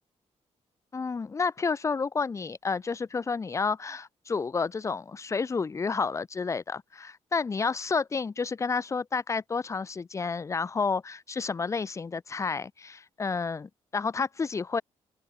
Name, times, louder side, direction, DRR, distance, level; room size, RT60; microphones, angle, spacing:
voice 1, 0.9-14.8, left 4 dB, 25° left, 0.6 m, -30 dB
open air
wide cardioid pair, 140°, 12 cm